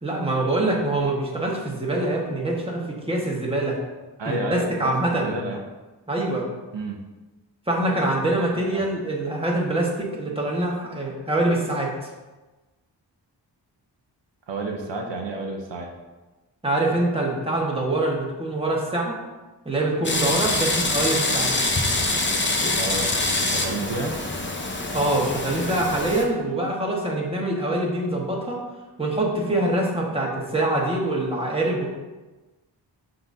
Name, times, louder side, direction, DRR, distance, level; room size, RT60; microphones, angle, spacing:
voice 1, 0.0-3.8 4.3-5.4 6.1-6.5 7.7-12.1 16.6-19.1 19.6-21.5 24.9-28.6 29.0-31.9, right 2 dB, 15° right, -3 dB, 1.4 m, -24 dB
voice 2, 4.2-5.6 6.7-7.0 8.7-8.8 14.5-15.9 22.7-24.1, right 2 dB, 75° right, 1 dB, 0.9 m, -30 dB
sound 1, 20.0-26.2, left 2 dB, 25° left, 0.8 m, -25 dB
11.5 x 4.0 x 2.7 m, 1.2 s
wide cardioid pair, 110°, 43 cm